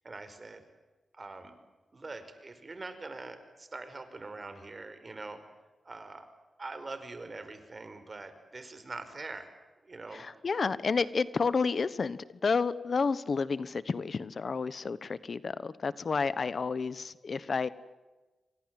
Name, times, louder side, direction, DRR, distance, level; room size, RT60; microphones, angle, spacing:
voice 1, 0.0-0.6 1.1-1.5 1.9-5.4 5.8-6.3 6.6-9.5 9.8-10.3, right 3 dB, 35° right, 9 dB, 5.3 m, -43 dB
voice 2, 10.1-17.7, left 5 dB, 55° left, 16 dB, 1.2 m, -30 dB
28.5 x 25.0 x 7.9 m, 1.2 s
cardioid pair, 85°, 0 cm